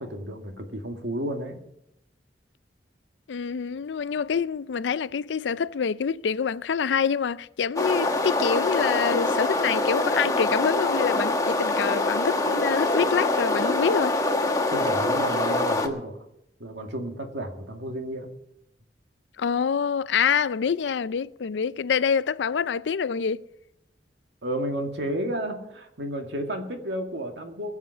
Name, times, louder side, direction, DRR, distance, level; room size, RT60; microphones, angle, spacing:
voice 1, 0.0-1.6 14.7-16.2 16.6-18.3 24.4-27.7, right 1 dB, 75° right, 2.1 m, -32 dB
voice 2, 3.3-14.2 19.4-23.4, left 6 dB, 75° left, 0.4 m, -26 dB
sound 1, 7.8-15.9, left 2 dB, 20° left, 1.3 m, -24 dB
21.5 x 7.3 x 6.0 m
head